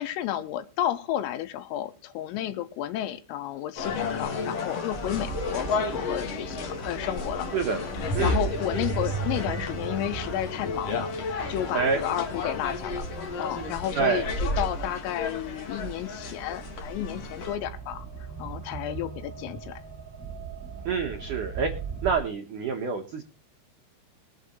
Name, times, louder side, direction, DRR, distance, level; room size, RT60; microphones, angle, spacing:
voice 1, 0.0-13.1 13.4-18.1 18.4-19.8, left 12 dB, 90° left, 11 dB, 3.8 m, -32 dB
sound 1, 3.8-17.5, left 3 dB, 70° left, 1.4 m, -32 dB
sound 2, 4.9-22.2, right 6 dB, 25° right, 1.9 m, -39 dB
voice 2, 14.0-14.3 20.9-21.7 22.0-23.2, right 6 dB, 90° right, 3 dB, 1.7 m, -27 dB
22.0 x 7.8 x 3.1 m, 0.33 s
omnidirectional pair, 5.8 m